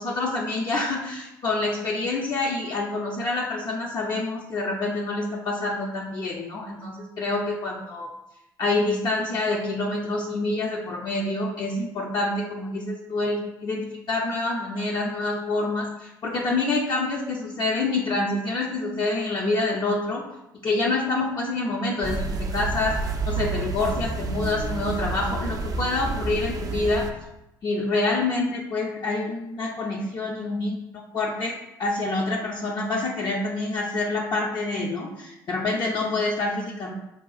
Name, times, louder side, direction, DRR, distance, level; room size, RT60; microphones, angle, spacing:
voice 1, 0.0-8.1 8.6-20.2 20.6-23.0 23.3-27.1 27.6-36.9, left 2 dB, 40° left, -2 dB, 0.5 m, -27 dB
sound 1, 22.0-27.1, right 3 dB, 35° right, 0.4 m, -29 dB
5.3 x 2.2 x 2.4 m, 0.91 s
hypercardioid pair, 60°, 10 cm